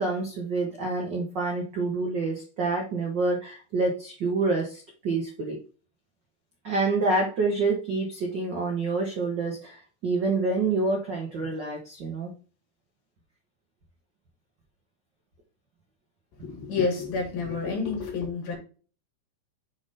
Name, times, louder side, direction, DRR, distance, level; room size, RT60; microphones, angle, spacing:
voice 1, 0.0-5.6 6.6-12.3, right 3 dB, 70° right, -1 dB, 1.0 m, -27 dB
voice 2, 16.4-18.6, left 4 dB, 90° left, 1 dB, 3.8 m, -29 dB
7.0 x 3.8 x 4.0 m, 0.38 s
omnidirectional pair, 4.0 m